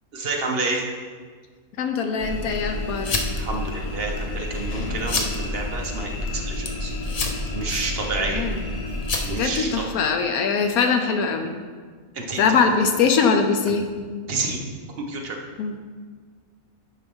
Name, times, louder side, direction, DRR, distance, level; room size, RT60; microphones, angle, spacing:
voice 1, 0.1-0.9 3.3-6.9 7.5-8.5 9.2-9.9 12.1-12.5 14.3-14.6 15.1-15.4, right 3 dB, 45° right, 1 dB, 1.1 m, -29 dB
voice 2, 1.8-3.2 8.3-8.5 9.3-11.5 12.4-13.8 15.6-15.7, left 5 dB, 80° left, 5 dB, 1.1 m, -22 dB
sound 1, 2.2-9.9, left 2 dB, 45° left, 0.5 m, -29 dB
9.5 x 5.5 x 3.6 m, 1.5 s
omnidirectional pair, 1.5 m